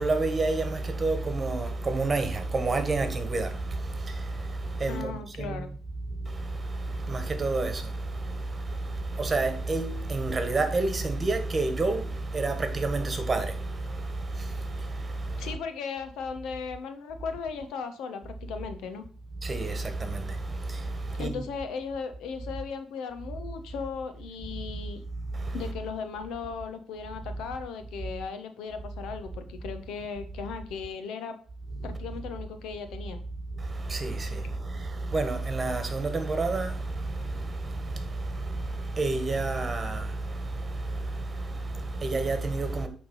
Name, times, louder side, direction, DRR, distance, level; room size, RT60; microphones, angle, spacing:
voice 1, 0.0-5.7 6.1-15.6 19.4-21.4 25.3-25.7 31.8-32.0 33.6-42.9, right 3 dB, 30° right, 1.5 m, -30 dB
voice 2, 4.9-5.7 15.4-19.0 21.1-25.0 25.5-31.4 31.8-33.2, left 5 dB, 85° left, 1.1 m, -37 dB
8.8 x 3.7 x 5.5 m
cardioid pair, 90°, 0 cm